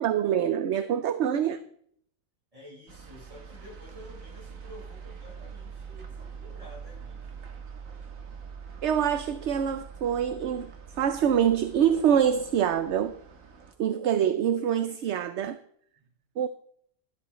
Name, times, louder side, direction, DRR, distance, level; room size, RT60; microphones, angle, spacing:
voice 1, 0.0-1.6 8.8-10.7 11.0-13.1 13.8-15.6 16.4-16.5, right 9 dB, 65° right, 11 dB, 0.9 m, -25 dB
voice 2, 2.5-7.4 16.0-16.1, left 1 dB, 25° right, -4 dB, 5.6 m, -50 dB
sound 1, 2.9-13.7, right 6 dB, 85° right, 1.7 m, -44 dB
15.0 x 12.0 x 3.1 m, 0.63 s
omnidirectional pair, 1.4 m